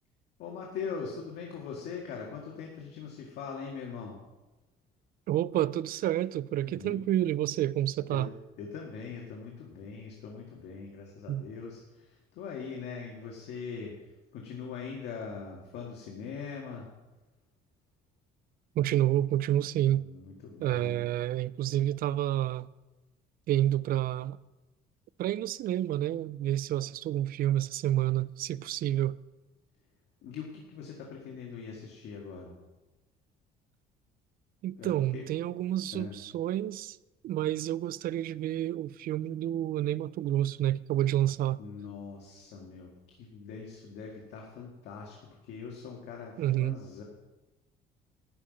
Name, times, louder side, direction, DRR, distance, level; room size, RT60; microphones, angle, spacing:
voice 1, 0.4-4.2 6.7-7.0 8.1-8.3 8.6-16.9 19.9-21.0 30.2-32.5 34.8-35.3 35.9-36.2 41.6-47.0, left 5 dB, 80° left, 1.9 m, -42 dB
voice 2, 5.3-8.3 11.3-11.5 18.8-20.0 20.6-22.7 23.5-24.4 25.2-29.2 34.6-37.0 37.2-41.6 46.4-46.8, right 13 dB, 60° right, 0.4 m, -29 dB
12.5 x 5.7 x 9.1 m
cardioid pair, 110°, 17 cm